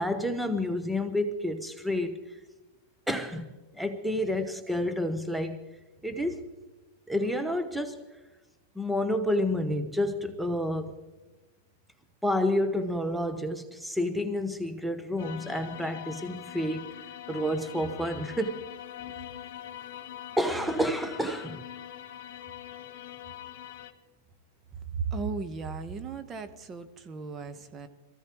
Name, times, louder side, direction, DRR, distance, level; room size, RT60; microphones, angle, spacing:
voice 1, 0.0-2.2 3.1-3.5 3.7-5.6 6.0-6.4 7.1-8.0 8.8-10.9 12.2-16.9 17.3-18.6 20.4-21.6, left 1 dB, ahead, 1.0 m, -29 dB
sound 1, 15.2-23.9, left 11 dB, 60° left, 1.6 m, -43 dB
voice 2, 25.1-27.9, right 4 dB, 25° right, 1.1 m, -36 dB
22.5 x 15.0 x 3.1 m
hypercardioid pair, 105°, 0 cm